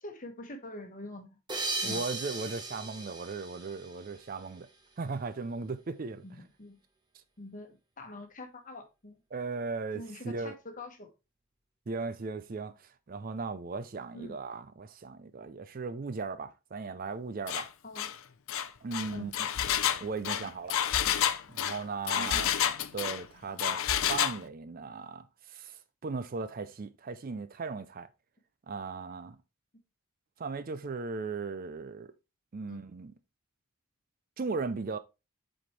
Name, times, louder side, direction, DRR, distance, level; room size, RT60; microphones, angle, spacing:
voice 1, 0.0-1.4 1.8-2.1 6.2-6.8 7.4-9.2 9.9-11.1 14.1-14.3 17.8-18.1 19.1-19.3 20.4-20.5 22.2-22.5 32.7-32.8, left 1 dB, 35° left, 1.1 m, -44 dB
sound 1, 1.5-4.6, right 3 dB, 20° right, 1.1 m, -37 dB
voice 2, 1.8-4.7 5.0-6.2 9.3-10.6 11.9-12.8 13.1-17.7 18.8-19.5 20.0-20.8 21.5-22.5 22.9-23.8 24.1-28.1 28.7-29.4 30.4-32.1 32.5-33.1 34.4-35.0, right 4 dB, 40° right, 0.4 m, -37 dB
Engine, 17.5-17.7 18.0-18.1 18.5-23.2 23.6-24.4, left 10 dB, 65° left, 0.5 m, -29 dB
7.5 x 4.3 x 3.2 m
head